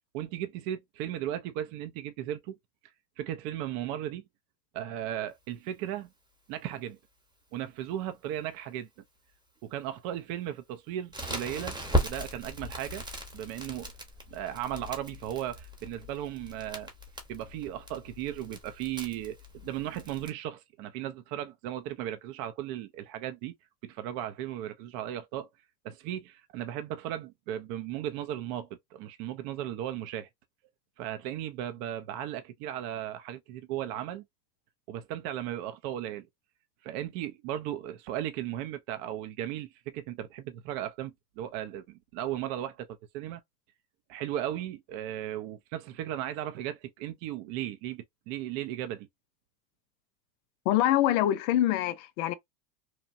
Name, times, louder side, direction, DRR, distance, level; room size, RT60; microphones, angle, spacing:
voice 1, 0.1-2.5 3.2-4.2 4.7-6.1 6.5-7.0 7.5-8.9 9.6-13.0 13.3-13.9 14.3-16.9 17.3-23.5 23.8-25.5 25.8-30.3 31.0-34.2 34.9-36.3 36.8-43.4 44.1-49.1, right 12 dB, 45° right, 0.4 m, -36 dB
Crackle, 11.1-20.3, equal, 10° right, 0.9 m, -37 dB
voice 2, 50.7-52.3, left 13 dB, 65° left, 0.6 m, -25 dB
2.9 x 2.1 x 2.5 m
supercardioid pair, 115°, 49 cm